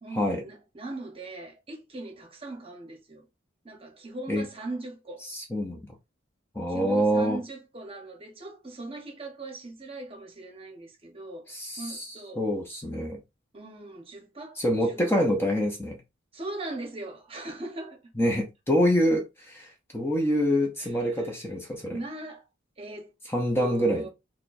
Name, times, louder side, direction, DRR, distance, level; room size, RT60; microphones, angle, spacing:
voice 1, 0.0-3.2 3.6-5.3 6.7-12.4 13.5-15.0 16.3-18.1 20.8-21.3 21.9-22.5 22.8-23.1 23.6-24.1, right 2 dB, 30° right, 0.9 m, -40 dB
voice 2, 5.2-5.8 6.5-7.4 11.5-12.1 12.4-13.2 14.6-16.0 18.2-22.0 23.3-24.1, equal, 10° left, 0.6 m, -26 dB
4.2 x 2.2 x 2.5 m
head